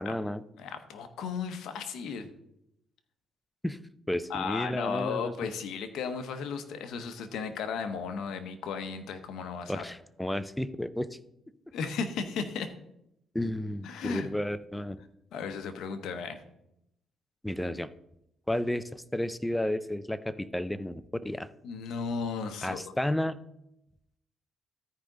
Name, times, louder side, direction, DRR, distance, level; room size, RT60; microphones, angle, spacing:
voice 1, 0.0-0.4 3.6-3.8 4.1-5.3 9.7-11.2 13.3-15.0 17.4-17.9 18.5-21.5 22.6-23.4, left 1 dB, 5° left, 14 dB, 0.5 m, -32 dB
voice 2, 0.6-2.3 4.3-9.9 11.7-12.7 13.8-14.3 15.3-16.4 21.6-22.9, left 5 dB, 80° left, 8 dB, 0.9 m, -35 dB
13.0 x 4.9 x 3.8 m, 0.81 s
cardioid pair, 90°, 0 cm